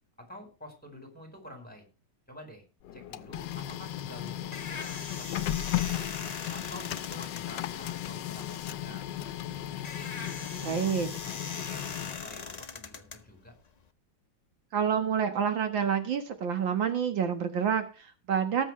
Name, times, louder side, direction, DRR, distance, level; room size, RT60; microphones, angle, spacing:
voice 1, 0.2-1.8 2.3-2.6 2.9-6.1 6.5-9.1 9.5-13.5, equal, 5° left, 4 dB, 4.6 m, -49 dB
Printer, 2.8-12.6, left 13 dB, 70° left, 1.3 m, -36 dB
sound 1, 4.0-13.9, left 5 dB, 35° left, 0.6 m, -42 dB
voice 2, 10.6-11.1 14.7-18.7, right 7 dB, 75° right, 7 dB, 2.1 m, -28 dB
19.0 x 7.2 x 3.2 m, 0.33 s
omnidirectional pair, 2.1 m